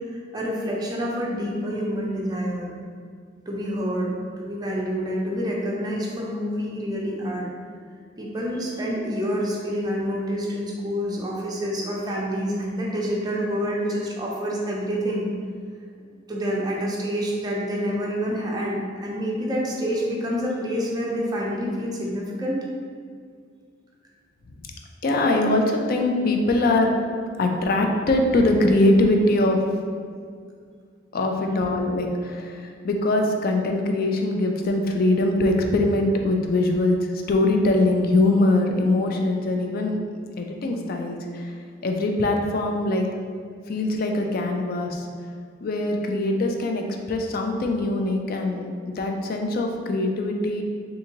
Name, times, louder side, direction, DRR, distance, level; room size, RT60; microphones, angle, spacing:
voice 1, 0.0-2.7 3.5-7.5 8.2-15.3 16.3-22.6 25.3-25.5 31.4-31.6, equal, 20° right, -3 dB, 0.5 m, -27 dB
voice 2, 25.0-26.9 27.4-29.6 31.1-37.0 37.3-40.0 40.4-41.5 41.8-43.1 43.7-45.1 45.6-50.6, left 2 dB, 50° left, 3 dB, 0.4 m, -22 dB
3.7 x 2.6 x 2.9 m, 2.1 s
head